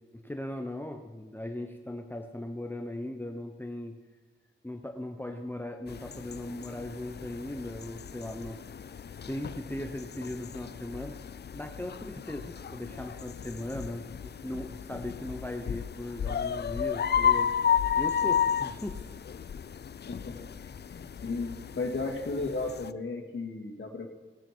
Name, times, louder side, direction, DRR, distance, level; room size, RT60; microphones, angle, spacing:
voice 1, 0.1-4.0 4.6-8.6 9.3-11.2 11.5-17.5 18.0-19.0, left 1 dB, 10° left, 4 dB, 1.0 m, -38 dB
sound 1, 5.9-22.9, left 8 dB, 55° left, 0.4 m, -33 dB
voice 2, 20.1-24.1, left 3 dB, 75° left, 1 dB, 2.2 m, -35 dB
18.0 x 10.0 x 4.6 m, 1.4 s
wide cardioid pair, 80°, 20 cm